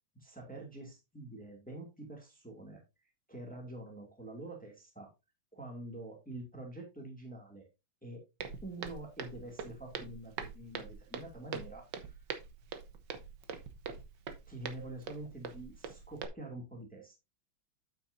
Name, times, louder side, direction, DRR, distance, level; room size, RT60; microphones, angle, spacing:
voice 1, 0.2-2.8 3.3-5.1 5.5-7.7 8.0-8.2 8.6-12.1 14.5-17.2, right 2 dB, 5° left, 1 dB, 2.2 m, -46 dB
Walk footsteps, 8.4-16.3, right 6 dB, 65° right, 1.5 m, -44 dB
8.9 x 8.0 x 2.6 m, 0.24 s
omnidirectional pair, 2.2 m